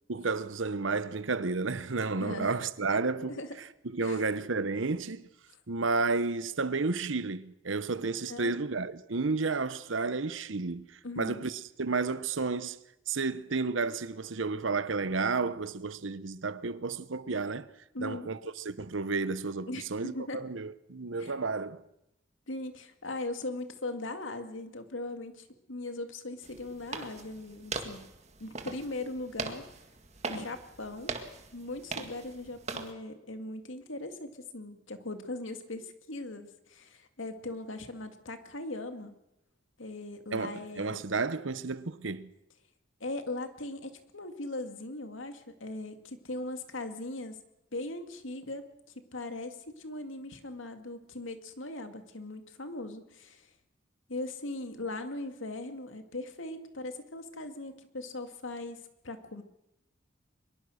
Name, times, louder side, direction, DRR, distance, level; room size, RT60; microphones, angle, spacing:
voice 1, 0.1-3.4 3.8-5.3 5.7-10.9 11.2-12.8 13.1-17.7 18.0-21.8 40.3-42.3, right 4 dB, 75° right, 1.0 m, -32 dB
voice 2, 2.1-2.6 3.3-3.5 4.0-4.2 8.3-8.6 11.0-11.4 17.9-18.3 19.7-20.4 21.2-21.3 22.5-28.1 28.4-29.6 30.3-31.1 31.5-39.2 39.8-41.0 43.0-47.4 47.7-48.7 49.0-53.5 54.1-59.4, left 2 dB, 80° left, 2.3 m, -39 dB
sound 1, 26.4-32.9, right 4 dB, 35° right, 1.9 m, -41 dB
23.5 x 22.0 x 6.5 m
head